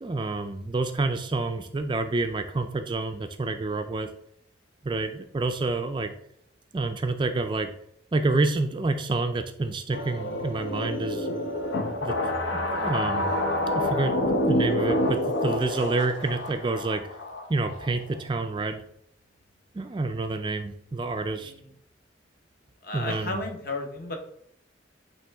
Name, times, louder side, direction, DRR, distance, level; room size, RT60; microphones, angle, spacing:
voice 1, 0.0-4.1 4.8-6.1 6.7-7.7 8.1-11.3 12.0-12.2 12.5-13.3 13.7-14.2 14.5-17.0 17.5-18.8 19.7-21.5 22.9-23.4, right 3 dB, 25° right, 7 dB, 0.3 m, -28 dB
sound 1, 9.9-18.2, left 1 dB, 75° left, 0.8 m, -28 dB
voice 2, 21.3-21.7 22.8-24.2, left 2 dB, 50° left, 4 dB, 0.9 m, -34 dB
8.8 x 3.1 x 3.4 m, 0.71 s
head